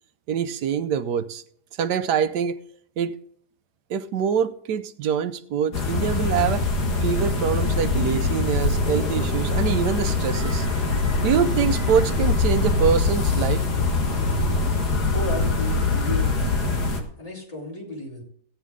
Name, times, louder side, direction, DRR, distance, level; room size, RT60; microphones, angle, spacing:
voice 1, 0.3-1.4 1.8-2.5 3.0-3.2 3.9-6.6 7.0-10.7 11.2-13.6, right 7 dB, 80° right, 1.4 m, -24 dB
sound 1, 5.7-17.0, left 3 dB, 75° left, 2.2 m, -23 dB
voice 2, 15.1-16.6 17.2-18.2, left 1 dB, 20° left, 4.1 m, -33 dB
15.0 x 9.3 x 3.7 m
omnidirectional pair, 1.8 m